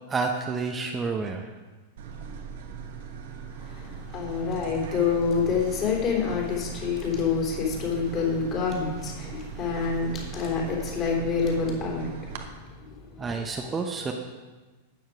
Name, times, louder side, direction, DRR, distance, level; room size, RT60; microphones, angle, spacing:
voice 1, 0.1-1.5 13.2-14.1, right 4 dB, 20° right, 2 dB, 1.0 m, -29 dB
sound 1, 2.0-12.4, right 6 dB, 55° right, 1.2 m, -40 dB
voice 2, 3.6-13.7, left 5 dB, 35° left, -1 dB, 3.5 m, -28 dB
12.0 x 9.3 x 4.8 m, 1.3 s
figure-of-eight pair, 90°, 0 cm